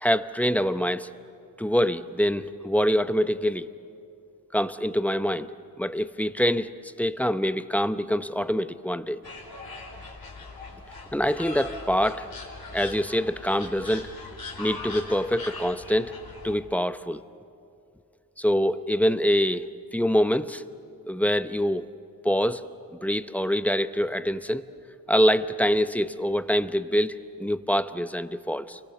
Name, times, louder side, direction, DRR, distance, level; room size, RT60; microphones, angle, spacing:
voice 1, 0.0-1.1 1.6-3.7 4.5-5.5 5.8-6.7 7.0-9.2 11.1-12.3 12.7-14.1 14.6-16.1 16.4-17.2 18.4-19.7 19.9-20.6 21.1-21.9 22.2-22.6 23.0-24.7 25.1-28.8, equal, 5° left, 12 dB, 0.8 m, -25 dB
sound 1, 9.2-16.6, left 3 dB, 70° left, 4.0 m, -40 dB
29.5 x 24.0 x 7.0 m, 2.5 s
cardioid pair, 60°, 37 cm